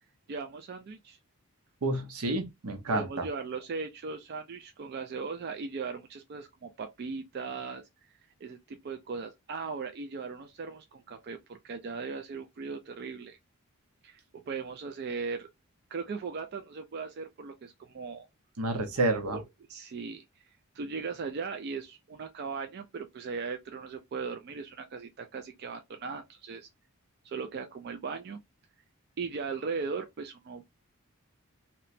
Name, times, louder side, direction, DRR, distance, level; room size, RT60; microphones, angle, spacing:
voice 1, 0.3-1.2 2.9-13.4 14.0-14.2 14.5-15.5 15.9-18.3 19.3-19.4 19.7-20.2 20.7-26.7 27.2-28.4 29.2-30.7, right 4 dB, 45° right, 0.3 m, -38 dB
voice 2, 1.8-3.3 18.6-19.4, right 2 dB, 80° right, 0.7 m, -29 dB
2.9 x 2.1 x 2.4 m
head